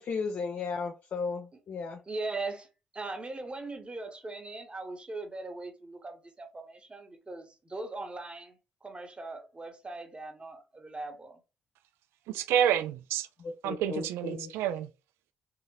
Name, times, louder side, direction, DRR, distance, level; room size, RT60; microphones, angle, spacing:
voice 1, 0.0-2.0 13.4-14.5, left 5 dB, 45° left, 0.5 m, -35 dB
voice 2, 2.1-2.7 2.9-11.4, right 3 dB, 25° right, 0.9 m, -40 dB
voice 3, 12.3-13.3 13.6-14.9, right 10 dB, 65° right, 0.3 m, -29 dB
3.5 x 2.8 x 2.9 m
figure-of-eight pair, 40°, 5 cm